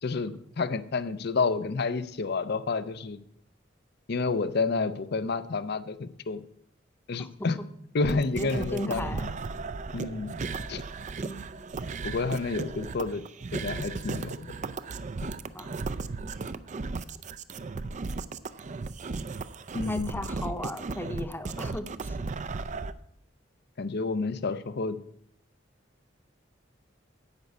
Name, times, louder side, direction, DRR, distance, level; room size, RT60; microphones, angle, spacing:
voice 1, 0.0-3.2 4.1-6.4 7.1-7.6 7.9-9.3 9.9-10.3 10.7-10.8 12.0-13.2 13.5-14.5 19.7-20.2 23.8-25.0, left 4 dB, 60° left, 14 dB, 0.6 m, -29 dB
sound 1, 8.0-22.9, right 4 dB, 40° right, 0.4 m, -35 dB
voice 2, 8.3-9.3 11.2-11.5 15.5-15.8 19.9-22.2, left 1 dB, 10° left, 8 dB, 0.8 m, -36 dB
10.5 x 5.2 x 8.1 m, 0.71 s
head